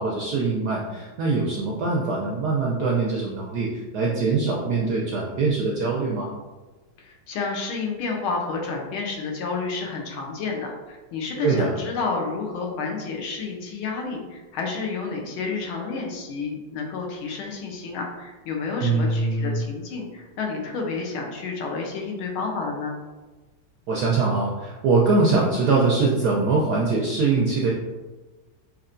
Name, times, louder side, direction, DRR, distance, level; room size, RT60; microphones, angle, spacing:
voice 1, 0.0-3.7 3.9-6.3 11.4-11.7 18.8-19.6 23.9-27.7, right 3 dB, 75° right, -3 dB, 0.9 m, -23 dB
voice 2, 7.0-23.0, left 4 dB, 75° left, 0 dB, 1.6 m, -30 dB
6.4 x 2.9 x 2.5 m, 1.2 s
omnidirectional pair, 2.4 m